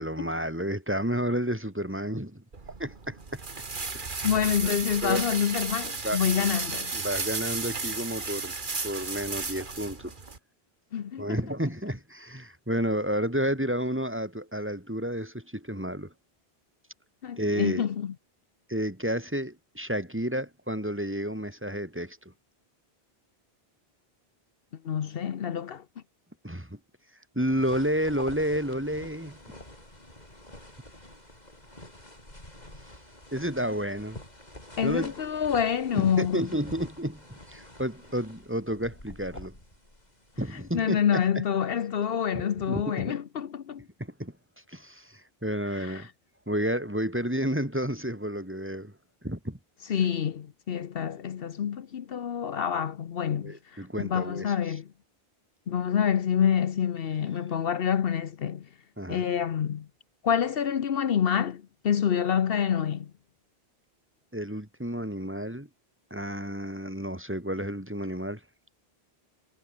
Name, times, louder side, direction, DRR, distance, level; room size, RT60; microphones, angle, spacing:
voice 1, 0.0-2.4 2.8-3.4 3.9-4.3 4.6-4.8 5.0-5.2 6.0-6.2 6.9-8.5 8.8-10.1 11.2-16.1 17.4-17.8 18.7-22.2 26.4-26.8 27.3-29.4 33.3-34.2 34.8-35.1 35.9-39.5 40.4-41.4 42.3-43.1 44.0-44.3 44.7-46.1 46.5-48.9 49.2-49.6 53.3-54.5 59.0-59.2 64.3-65.7 66.1-68.4, equal, 10° right, 3.0 m, -31 dB
sound 1, 2.5-10.4, right 4 dB, 55° right, 2.0 m, -34 dB
voice 2, 4.2-6.9 10.9-11.4 17.2-18.1 24.8-25.8 34.8-36.4 40.7-43.8 45.7-46.1 49.9-53.6 54.0-54.9 55.7-58.7 59.1-59.9 60.2-63.1, left 8 dB, 70° left, 1.0 m, -27 dB
sound 2, 27.4-40.8, left 1 dB, 45° left, 6.6 m, -47 dB
omnidirectional pair, 1.0 m